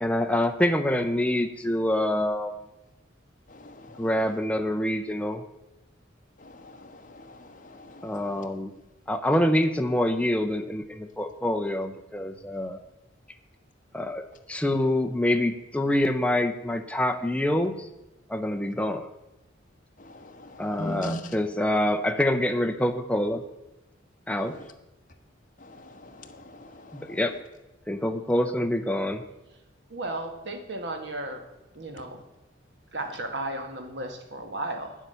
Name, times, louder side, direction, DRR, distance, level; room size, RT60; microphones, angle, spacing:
voice 1, 0.0-2.5 4.0-5.4 8.0-8.7 9.1-12.8 13.9-17.9 18.3-19.1 20.6-23.4 24.3-24.6 26.9-27.3 27.9-29.2, left 1 dB, 5° left, 0.6 m, -26 dB
voice 2, 3.6-4.0 6.8-7.4 7.7-8.1 20.1-21.2 25.7-26.3 26.6-27.0, left 1 dB, 45° left, 1.0 m, -39 dB
voice 3, 29.9-31.4 31.7-32.2 32.9-34.9, right 2 dB, 60° right, 1.5 m, -34 dB
9.5 x 7.4 x 6.8 m
head